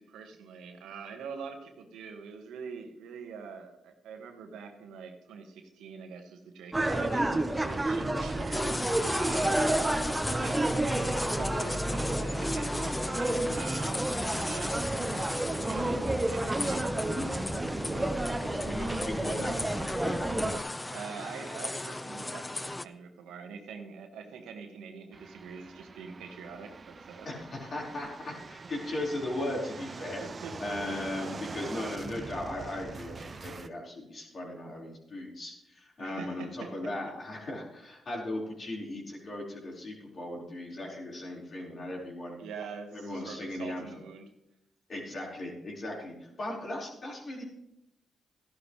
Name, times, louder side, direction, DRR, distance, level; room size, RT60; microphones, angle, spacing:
voice 1, 0.0-9.7 10.3-16.9 20.9-27.3 30.2-31.6 36.0-36.7 42.4-44.3, right 5 dB, 85° right, 5 dB, 1.5 m, -45 dB
sound 1, 6.7-20.6, right 1 dB, 20° right, 1.2 m, -30 dB
sound 2, 8.5-22.8, left 2 dB, 15° left, 0.5 m, -37 dB
voice 2, 17.8-20.5 27.2-30.2 30.6-42.4 42.9-43.8 44.9-47.4, left 1 dB, 50° left, -2 dB, 5.0 m, -38 dB
sound 3, 25.1-33.7, right 4 dB, 45° right, 0.7 m, -44 dB
14.5 x 11.5 x 3.3 m, 0.84 s
supercardioid pair, 55°, 0 cm